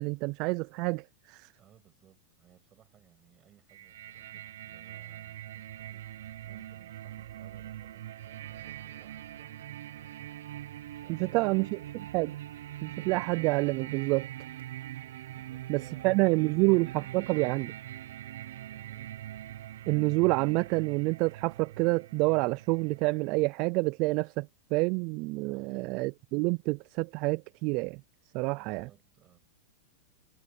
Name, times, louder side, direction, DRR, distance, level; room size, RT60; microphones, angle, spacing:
voice 1, 0.0-1.5 11.1-11.8 12.1-12.3 12.8-14.3 15.7-17.7 19.9-28.0 28.3-28.9, right 26 dB, 40° right, 0.3 m, -28 dB
voice 2, 1.6-10.3 10.5-11.9 12.2-12.4 15.3-17.4 18.7-19.2 25.5-26.0 28.5-29.4, right 11 dB, 25° right, 7.6 m, -61 dB
sound 1, 3.7-23.5, right 13 dB, 75° right, 0.6 m, -43 dB
supercardioid pair, 150°, 0 cm